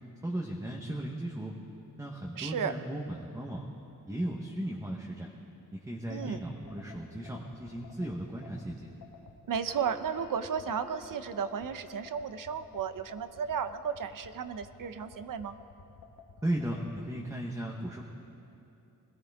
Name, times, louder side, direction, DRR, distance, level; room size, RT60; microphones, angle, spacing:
voice 1, 0.2-1.5 2.0-3.7 4.1-5.3 5.9-8.9 16.4-18.0, right 1 dB, 10° right, -1 dB, 0.9 m, -36 dB
voice 2, 2.4-2.7 6.1-6.4 9.5-15.6, right 7 dB, 70° right, 11 dB, 0.7 m, -34 dB
sound 1, 6.1-17.0, left 6 dB, 85° left, 1.6 m, -52 dB
Piano, 9.7-12.2, left 1 dB, 45° left, 3.4 m, -52 dB
21.0 x 17.0 x 3.5 m, 2.8 s
wide cardioid pair, 165°, 34 cm